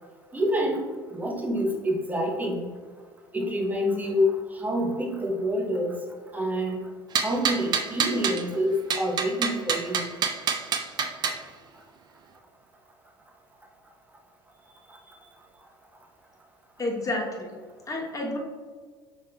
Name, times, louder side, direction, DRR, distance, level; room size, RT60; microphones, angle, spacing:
voice 1, 0.3-2.7 3.3-6.0 6.3-6.8 7.2-10.1, equal, 15° right, 0 dB, 0.8 m, -27 dB
sound 1, 7.1-8.4 8.9-11.4, right 6 dB, 35° right, 0.4 m, -27 dB
voice 2, 16.8-17.5 17.9-18.4, left 2 dB, 25° left, 0 dB, 0.9 m, -30 dB
5.2 x 3.6 x 2.2 m, 1.5 s
hypercardioid pair, 70°, 13 cm